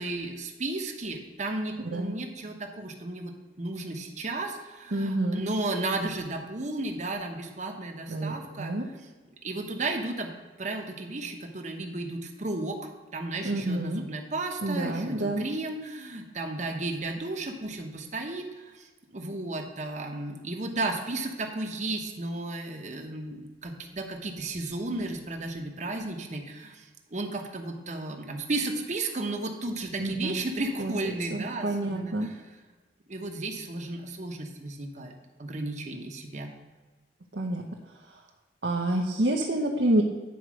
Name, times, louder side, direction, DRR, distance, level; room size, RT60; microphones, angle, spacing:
voice 1, 0.0-9.1 9.4-10.3 10.6-12.8 13.1-32.6 33.1-36.5, right 2 dB, 40° right, 3 dB, 1.0 m, -34 dB
voice 2, 4.9-5.4 8.1-8.9 13.4-14.0 14.6-15.4 30.0-30.3 30.8-30.9 31.6-32.3 37.3-37.7 38.6-40.0, right 1 dB, 70° right, 0 dB, 0.9 m, -27 dB
9.5 x 4.6 x 6.2 m, 1.3 s
head